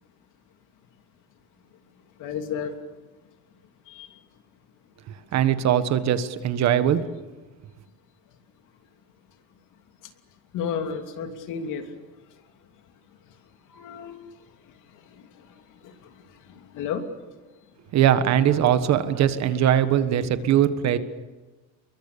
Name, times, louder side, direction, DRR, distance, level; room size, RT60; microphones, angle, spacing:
voice 1, 2.2-2.7 3.9-4.1 10.5-11.8 13.7-14.2 15.8-15.9 16.7-17.0, left 7 dB, 60° left, 5 dB, 3.0 m, -31 dB
voice 2, 5.1-7.2 17.9-21.0, right 10 dB, 50° right, 11 dB, 1.5 m, -21 dB
29.0 x 23.0 x 6.9 m, 1.2 s
cardioid pair, 175°, 34 cm